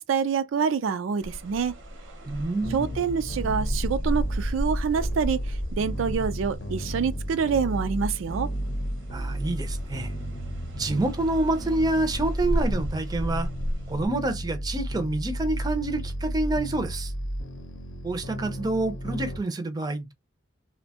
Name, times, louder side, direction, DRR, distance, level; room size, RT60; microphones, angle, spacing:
voice 1, 0.0-1.7 2.7-8.5, right 6 dB, 90° right, 0.4 m, -26 dB
sound 1, 1.2-7.4 7.9-14.1, equal, 70° right, 0.8 m, -34 dB
voice 2, 2.2-2.9 9.1-10.1 10.7-13.5 13.9-17.1 18.0-20.1, right 2 dB, 20° right, 0.4 m, -27 dB
sound 2, 2.6-19.4, equal, 70° left, 0.7 m, -33 dB
2.6 x 2.1 x 2.8 m
head